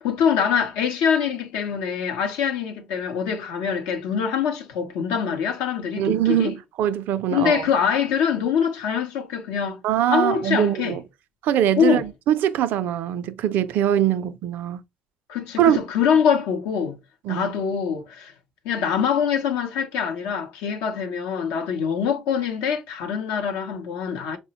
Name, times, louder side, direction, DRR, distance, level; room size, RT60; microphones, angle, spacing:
voice 1, 0.0-6.5 7.3-9.8 10.1-11.0 11.8-12.0 15.3-17.0 17.3-18.3 18.6-24.4, left 7 dB, 85° left, 0.6 m, -24 dB
voice 2, 6.0-7.6 9.8-11.0 11.4-14.8 15.6-15.8 17.2-17.5, right 11 dB, 70° right, 0.4 m, -22 dB
4.0 x 2.1 x 2.8 m
supercardioid pair, 65°, 3 cm